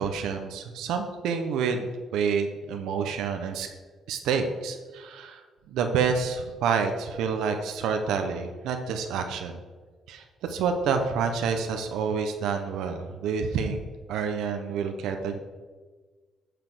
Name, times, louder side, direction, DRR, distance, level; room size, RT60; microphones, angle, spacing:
voice 1, 0.0-3.7 4.1-9.6 10.1-13.8 14.1-15.4, right 6 dB, 90° right, 5 dB, 0.9 m, -28 dB
9.1 x 5.1 x 6.1 m, 1.4 s
cardioid pair, 90°, 0 cm